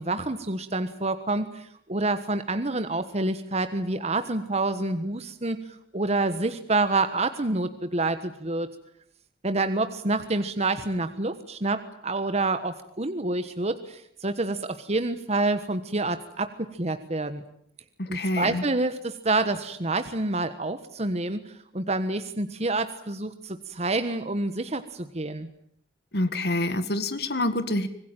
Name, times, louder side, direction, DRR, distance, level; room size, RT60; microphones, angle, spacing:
voice 1, 0.0-8.7 9.4-17.4 18.1-25.5, right 2 dB, 40° right, 10 dB, 1.3 m, -28 dB
voice 2, 18.0-18.6 26.1-27.9, left 1 dB, 65° left, 11 dB, 1.9 m, -27 dB
25.5 x 21.0 x 9.2 m, 0.67 s
head